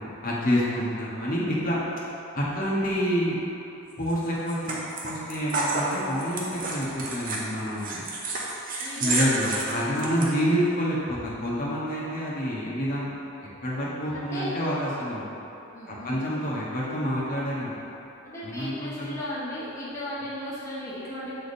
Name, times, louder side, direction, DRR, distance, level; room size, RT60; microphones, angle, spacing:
voice 1, 0.0-1.8 2.3-3.4 4.0-4.8 5.0-8.0 9.0-13.1 13.6-15.2 15.9-17.7 18.4-19.2, equal, 40° left, -7 dB, 1.0 m, -28 dB
sound 1, 4.1-10.3, right 2 dB, 40° right, 0.7 m, -30 dB
voice 2, 8.8-9.5 14.0-14.5 15.7-16.2 18.2-21.3, equal, 10° left, -11 dB, 0.9 m, -36 dB
7.4 x 3.4 x 4.2 m, 2.9 s
head